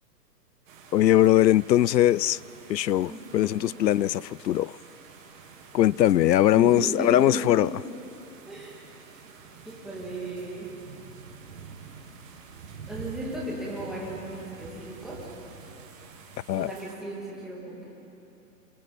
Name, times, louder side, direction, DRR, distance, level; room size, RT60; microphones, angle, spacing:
sound 1, 0.7-17.0, right 5 dB, 50° right, 3.7 m, -47 dB
voice 1, 0.9-2.4 2.7-4.7 5.7-7.7 16.5-16.7, left 13 dB, 85° left, 0.6 m, -21 dB
voice 2, 3.1-3.6 6.6-7.7 8.5-8.7 9.6-10.7 12.9-15.2 16.6-17.9, right 1 dB, ahead, 2.4 m, -35 dB
29.0 x 26.5 x 4.2 m
hypercardioid pair, 165°, 49 cm